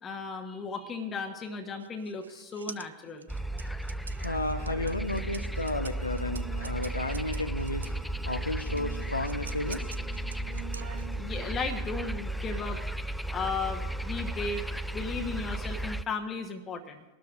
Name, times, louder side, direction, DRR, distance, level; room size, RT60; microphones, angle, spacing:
voice 1, 0.0-3.3 11.2-12.8 13.3-14.6 14.9-17.0, left 4 dB, 25° left, 4 dB, 1.2 m, -35 dB
sound 1, 1.8-8.0 8.8-11.4, right 5 dB, 75° right, 0.4 m, -47 dB
sound 2, 3.3-16.0, right 1 dB, ahead, 0.3 m, -34 dB
voice 2, 4.2-7.9 8.3-9.9, left 1 dB, 85° left, 5 dB, 0.7 m, -33 dB
Keyboard (musical), 4.5-12.1, right 9 dB, 55° right, 2.0 m, -48 dB
23.5 x 12.5 x 2.5 m, 1.1 s
figure-of-eight pair, 90°, 0 cm